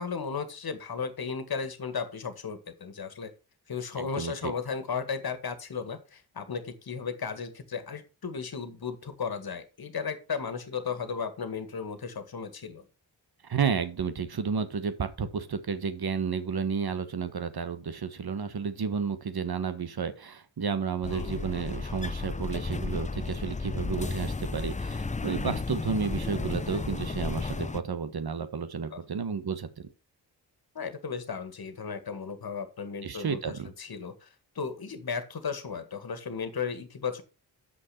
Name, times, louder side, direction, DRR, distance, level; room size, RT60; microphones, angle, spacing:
voice 1, 0.0-3.3 3.7-12.8 21.1-21.5 28.9-29.0 30.8-34.3 34.6-37.2, left 6 dB, 55° left, 10 dB, 1.9 m, -35 dB
voice 2, 4.0-4.5 13.4-29.9 33.0-33.7, right 6 dB, 55° right, 10 dB, 1.4 m, -32 dB
sound 1, 21.0-27.8, left 3 dB, 15° left, 0.6 m, -33 dB
7.6 x 6.0 x 5.7 m, 0.32 s
cardioid pair, 50°, 44 cm